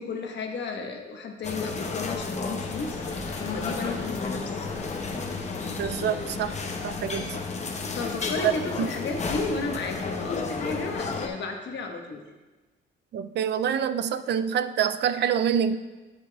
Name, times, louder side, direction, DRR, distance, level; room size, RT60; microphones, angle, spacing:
voice 1, 0.0-4.7 7.9-12.2, left 4 dB, 65° left, 3 dB, 1.2 m, -33 dB
sound 1, 1.4-11.3, left 4 dB, 35° left, 0.8 m, -32 dB
sound 2, 2.6-7.9, left 2 dB, 85° left, 1.7 m, -43 dB
voice 2, 5.8-6.6 6.8-7.3 8.4-8.5 8.8-8.9 13.1-15.8, right 8 dB, 60° right, 12 dB, 0.4 m, -26 dB
8.9 x 8.1 x 2.3 m, 1.2 s
cardioid pair, 90°, 20 cm